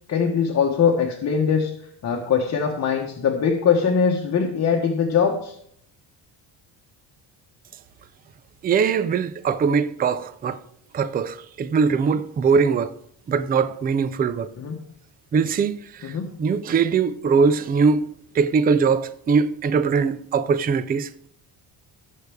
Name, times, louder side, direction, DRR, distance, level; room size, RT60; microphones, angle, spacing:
voice 1, 0.1-1.7 2.0-5.6 14.6-14.8 16.0-16.2, left 6 dB, 40° left, 1.1 m, -21 dB
voice 2, 8.6-10.6 10.9-12.9 13.3-14.5 15.3-16.1 16.4-18.1 18.3-21.3, right 5 dB, 25° right, 0.3 m, -21 dB
18.5 x 6.5 x 3.5 m
cardioid pair, 175°, 43 cm